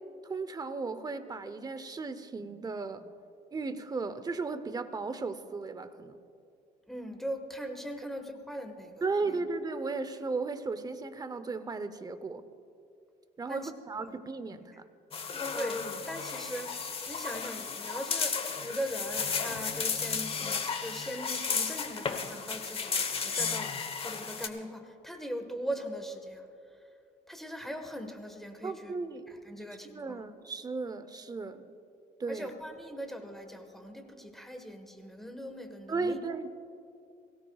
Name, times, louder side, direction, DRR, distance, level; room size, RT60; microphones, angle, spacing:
voice 1, 0.3-3.1 3.5-6.2 9.0-12.4 13.4-14.8 28.6-29.2 29.8-31.7 32.2-32.5 35.9-36.5, right 3 dB, 25° right, 11 dB, 0.8 m, -35 dB
voice 2, 6.9-9.4 13.5-13.7 15.5-26.4 27.3-28.9 29.3-30.2 32.3-36.2, equal, ahead, 5 dB, 1.5 m, -40 dB
sound 1, 15.1-24.5, left 5 dB, 35° left, 1.2 m, -34 dB
23.0 x 17.0 x 2.4 m, 2.5 s
cardioid pair, 110°, 17 cm